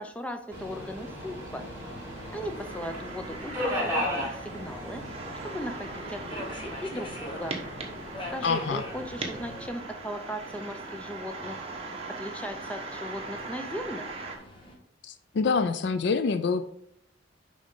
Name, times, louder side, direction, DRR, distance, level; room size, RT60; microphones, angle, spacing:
voice 1, 0.0-1.6 2.3-5.1 5.4-7.6 8.3-14.1, equal, 5° left, 6 dB, 0.7 m, -38 dB
Subway metro underground, 0.5-9.7, equal, 10° right, 2.5 m, -37 dB
sound 1, 1.0-14.4, right 3 dB, 35° right, 1.2 m, -41 dB
Subway metro underground 2, 2.1-14.8, left 1 dB, 30° left, 1.4 m, -45 dB
voice 2, 8.4-8.8 15.0-16.6, left 5 dB, 65° left, 10 dB, 0.4 m, -26 dB
9.9 x 3.8 x 3.8 m, 0.71 s
head